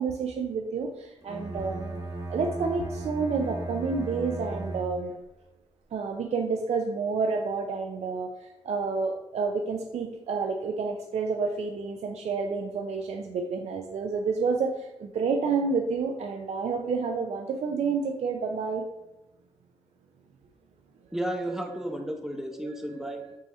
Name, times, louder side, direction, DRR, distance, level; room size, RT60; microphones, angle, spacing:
voice 1, 0.0-2.0 2.3-5.1 5.9-18.8 21.5-21.6 22.6-23.4, right 4 dB, 70° right, 3 dB, 0.4 m, -29 dB
Bowed string instrument, 1.2-5.3, right 2 dB, 30° right, 1.0 m, -36 dB
voice 2, 21.1-23.2, right 1 dB, 5° right, 3 dB, 0.6 m, -33 dB
3.6 x 2.7 x 4.1 m, 0.97 s
cardioid pair, 75°, 12 cm